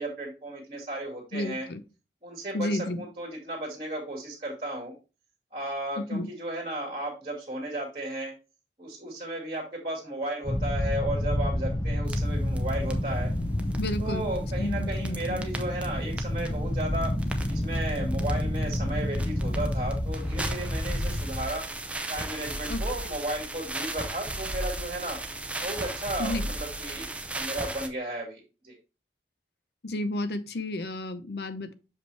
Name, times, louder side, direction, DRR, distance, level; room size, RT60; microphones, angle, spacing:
voice 1, 0.0-1.7 2.2-4.9 5.5-8.3 8.8-13.3 14.0-17.2 17.5-21.6 22.1-25.2 25.6-28.7, right 1 dB, 30° right, -2 dB, 2.1 m, -34 dB
voice 2, 1.3-1.8 2.5-3.0 6.0-6.3 13.8-14.3 14.6-15.4 22.7-22.8 26.2-26.5 29.8-31.7, left 1 dB, 65° left, 12 dB, 0.7 m, -32 dB
sound 1, 10.4-21.5, left 1 dB, 25° left, 0.8 m, -29 dB
sound 2, 12.1-27.9, right 1 dB, 5° right, 0.6 m, -37 dB
6.3 x 5.2 x 3.2 m, 0.31 s
head